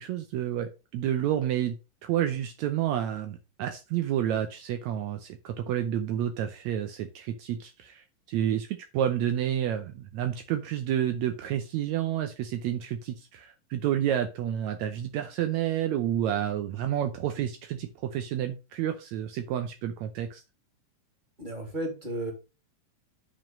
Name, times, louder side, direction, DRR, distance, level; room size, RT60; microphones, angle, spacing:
voice 1, 0.0-1.8 2.0-20.4, right 10 dB, 85° right, 7 dB, 1.6 m, -30 dB
voice 2, 21.4-22.3, right 1 dB, 15° right, 1 dB, 2.7 m, -33 dB
7.5 x 5.1 x 5.2 m, 0.29 s
omnidirectional pair, 4.0 m